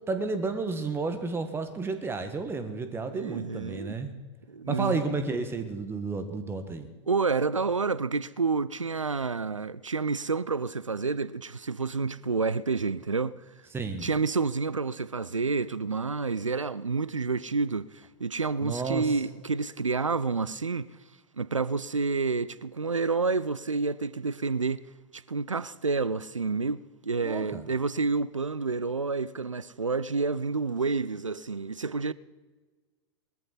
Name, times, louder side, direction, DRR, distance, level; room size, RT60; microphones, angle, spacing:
voice 1, 0.1-4.1 4.7-6.9 13.7-14.1 18.6-19.1 27.2-27.6, right 4 dB, 15° right, 1.5 m, -31 dB
voice 2, 3.1-4.0 4.5-5.2 6.3-6.4 7.1-13.4 14.0-20.9 21.4-24.8 25.1-32.1, right 4 dB, 90° right, 0.5 m, -29 dB
20.0 x 13.5 x 4.1 m
figure-of-eight pair, 95°, 16 cm